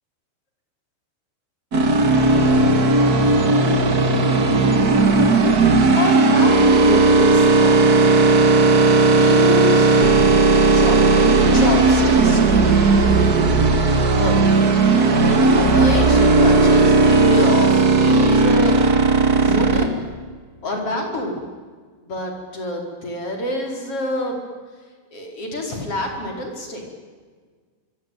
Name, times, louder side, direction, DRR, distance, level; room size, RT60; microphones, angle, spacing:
sound 1, 1.7-19.9, right 3 dB, 35° right, 1.8 m, -15 dB
voice 1, 5.9-8.1 9.1-12.9 14.2-14.4 15.3-18.9 19.4-20.1 20.6-21.4 22.0-24.4 25.1-26.8, left 1 dB, 40° left, 2 dB, 5.6 m, -27 dB
25.5 x 24.0 x 9.4 m, 1.5 s
omnidirectional pair, 4.2 m